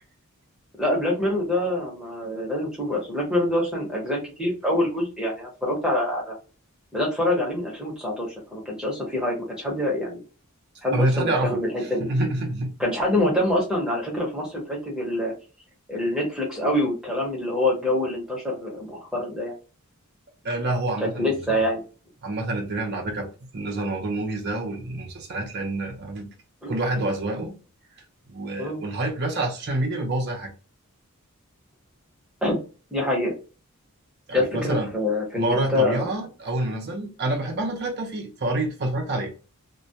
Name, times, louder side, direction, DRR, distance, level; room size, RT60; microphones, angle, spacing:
voice 1, 0.8-6.4 6.9-10.2 10.8-12.1 12.8-15.3 15.9-19.5 21.0-21.8 26.6-26.7 28.6-28.8 32.4-32.6 32.9-33.3 34.3-36.1, left 1 dB, 5° right, 0.8 m, -25 dB
voice 2, 10.9-12.7 20.4-21.6 22.2-26.3 26.7-27.6 28.3-30.5 34.3-34.9 35.4-39.3, right 2 dB, 45° right, 0.5 m, -27 dB
2.2 x 2.1 x 2.7 m
head